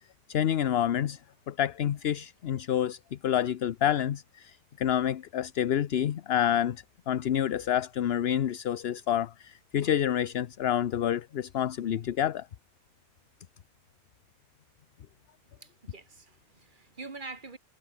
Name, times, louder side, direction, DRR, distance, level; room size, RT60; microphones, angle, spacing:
voice 1, 0.3-1.2 1.5-12.5, left 10 dB, 55° left, 0.8 m, -28 dB
voice 2, 15.6-17.6, right 3 dB, 35° right, 1.9 m, -45 dB
omnidirectional pair, 1.4 m